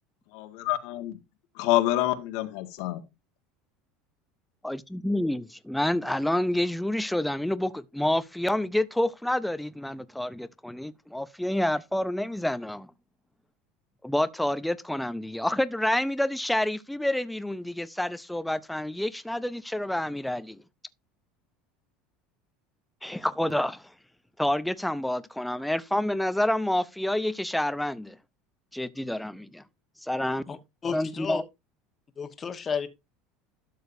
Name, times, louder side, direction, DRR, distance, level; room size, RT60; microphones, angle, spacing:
voice 1, 0.3-1.2 1.6-3.0, left 15 dB, 70° left, 1.7 m, -27 dB
voice 2, 4.6-12.9 14.0-20.6 23.0-23.8 24.4-28.2 28.7-29.6 30.0-30.6 30.9-31.4, left 1 dB, 5° left, 0.6 m, -28 dB
voice 3, 30.8-31.4 32.2-32.9, left 6 dB, 25° left, 1.3 m, -32 dB
12.0 x 6.6 x 2.7 m
supercardioid pair, 130°, 0 cm